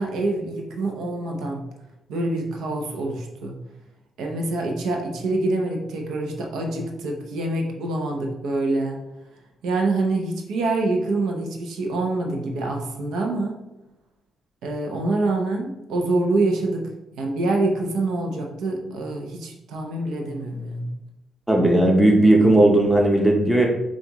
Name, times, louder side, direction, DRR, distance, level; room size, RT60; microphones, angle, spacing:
voice 1, 0.0-1.6 2.1-3.6 4.2-9.0 9.6-13.7 14.6-16.9 17.2-20.9, right 2 dB, 85° right, 1 dB, 0.8 m, -26 dB
voice 2, 21.5-23.7, right 1 dB, 10° right, 0 dB, 0.8 m, -16 dB
7.1 x 2.5 x 3.0 m, 0.94 s
cardioid pair, 115°, 0 cm